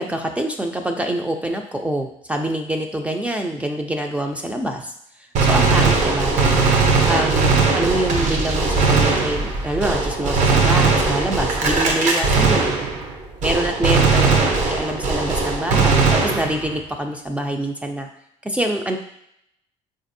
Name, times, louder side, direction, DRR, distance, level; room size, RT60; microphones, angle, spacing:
voice 1, 0.0-4.9 5.4-12.7 13.4-18.1 18.4-19.0, right 1 dB, 10° right, 3 dB, 0.3 m, -25 dB
Gunshot gunfire, 5.3-13.1 13.4-16.8, right 4 dB, 60° right, 0.7 m, -19 dB
4.0 x 2.5 x 2.6 m, 0.75 s
cardioid pair, 105°, 14 cm